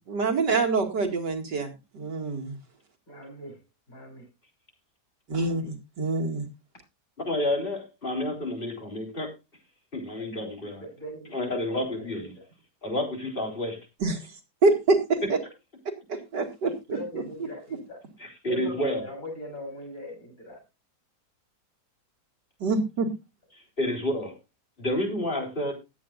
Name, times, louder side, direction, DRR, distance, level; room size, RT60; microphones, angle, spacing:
voice 1, 0.1-2.6 5.3-6.4 14.0-14.2 14.6-15.4 16.1-17.2 22.6-23.1, right 3 dB, 90° right, 4 dB, 2.9 m, -26 dB
voice 2, 3.1-3.6 3.9-4.2 5.6-5.7 10.1-10.5 10.8-11.3 11.9-12.2 16.9-18.0 18.5-20.6, left 1 dB, 55° left, 0 dB, 7.9 m, -40 dB
voice 3, 7.3-9.3 9.9-10.9 11.3-12.3 12.8-13.8 18.2-19.0 23.8-24.3 24.8-25.7, left 1 dB, 30° left, 1 dB, 4.1 m, -29 dB
19.5 x 8.8 x 2.5 m, 0.26 s
omnidirectional pair, 1.8 m